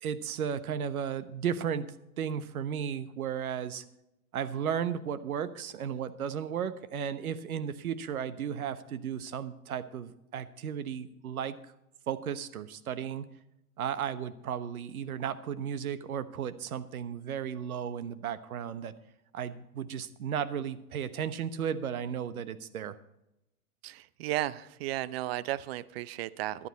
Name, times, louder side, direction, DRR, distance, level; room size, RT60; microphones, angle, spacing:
voice 1, 0.0-1.9 2.2-3.8 4.3-11.6 12.1-13.2 13.8-18.9 19.3-23.0, right 8 dB, 70° right, 13 dB, 1.2 m, -34 dB
voice 2, 23.8-26.7, right 15 dB, 45° right, 18 dB, 0.6 m, -34 dB
14.0 x 11.5 x 4.2 m, 0.86 s
hypercardioid pair, 110°, 45 cm